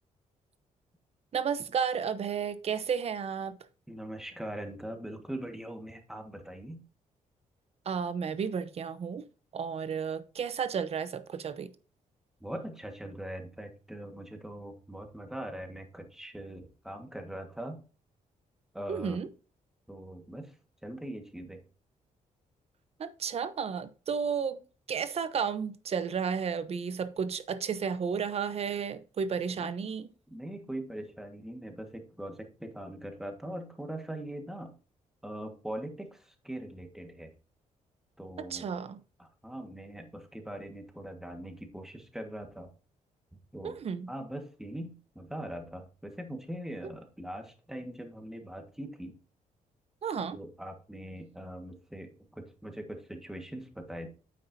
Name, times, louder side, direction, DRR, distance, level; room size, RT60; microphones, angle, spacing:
voice 1, 1.3-3.6 7.9-9.2 9.5-11.7 18.9-19.3 23.0-24.6 24.9-30.1 38.5-39.0 43.6-44.1 50.0-50.4, right 6 dB, 50° right, 0.9 m, -32 dB
voice 2, 3.9-6.8 12.4-17.8 18.7-19.2 19.9-20.6 20.8-21.6 29.6-29.7 30.3-34.7 35.2-37.3 38.2-38.7 39.2-42.7 43.5-43.8 44.1-49.1 50.3-54.1, right 1 dB, 5° right, 1.6 m, -41 dB
9.6 x 7.5 x 2.7 m
cardioid pair, 125°, 14 cm